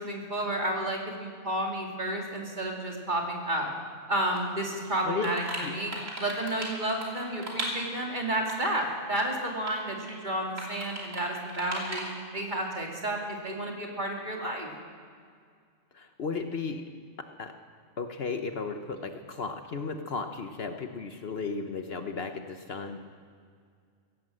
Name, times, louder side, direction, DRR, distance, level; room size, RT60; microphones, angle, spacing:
voice 1, 0.0-3.7 4.1-5.9 6.2-12.1 12.3-14.7, right 1 dB, 35° right, 0 dB, 2.6 m, -31 dB
sound 1, 4.3-4.4 4.8-8.0 8.5-8.9 9.3-9.8 10.1-10.2 10.6-11.2 11.5-12.1, right 1 dB, 85° right, 3.4 m, -37 dB
voice 2, 15.9-16.8 17.4-17.5 18.0-23.0, left 4 dB, 55° left, 6 dB, 1.0 m, -34 dB
16.5 x 11.5 x 7.7 m, 2.1 s
omnidirectional pair, 1.3 m